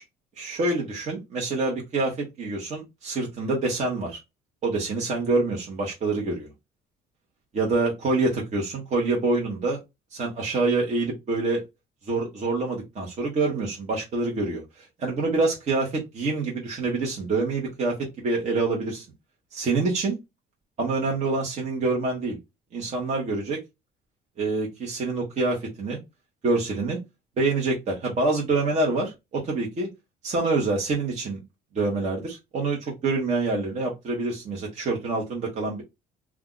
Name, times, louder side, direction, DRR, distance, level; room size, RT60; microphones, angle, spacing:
voice 1, 0.4-4.2 4.6-6.5 7.5-9.8 10.1-11.6 12.1-19.0 19.5-20.2 20.8-22.4 22.7-23.6 24.4-26.0 26.4-27.0 27.4-29.9 30.2-31.4 31.7-35.8, right 3 dB, 45° right, -2 dB, 1.1 m, -26 dB
2.6 x 2.3 x 3.8 m, 0.21 s
cardioid pair, 110°, 17 cm